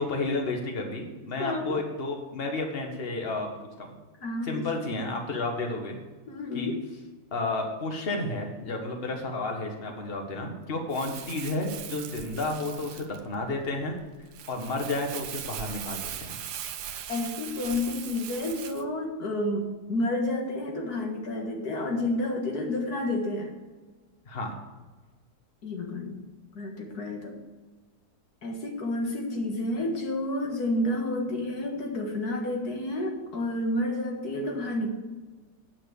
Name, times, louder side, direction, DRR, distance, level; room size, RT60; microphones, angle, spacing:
voice 1, 0.0-4.0 4.4-6.0 6.5-6.7 7.3-14.0 14.5-16.3 24.3-24.5, left 2 dB, 40° left, 2 dB, 1.6 m, -31 dB
voice 2, 1.4-1.8 4.2-4.7 6.3-6.8 17.1-23.6 25.6-26.2 26.5-27.4 28.4-34.9, left 1 dB, 75° left, 2 dB, 2.2 m, -30 dB
Crumpling crinkling, 10.9-18.8, right 10 dB, 85° right, 1.3 m, -40 dB
9.2 x 5.9 x 8.3 m, 1.3 s
omnidirectional pair, 1.7 m